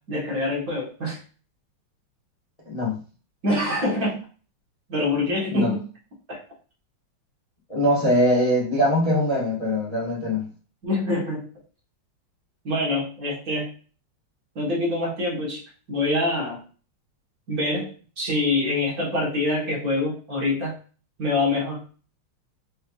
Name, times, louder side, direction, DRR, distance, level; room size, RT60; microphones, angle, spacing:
voice 1, 0.1-1.2 3.4-4.3 4.9-5.9 6.3-6.4 10.8-11.5 12.6-13.7 14.5-15.6 15.9-16.6 17.5-17.9 18.2-20.7 21.2-21.8, left 2 dB, 45° right, -4 dB, 1.6 m, -25 dB
voice 2, 2.6-3.0 5.5-5.7 7.7-10.5, equal, 25° left, -5 dB, 0.9 m, -22 dB
5.5 x 3.3 x 2.3 m, 0.38 s
omnidirectional pair, 2.4 m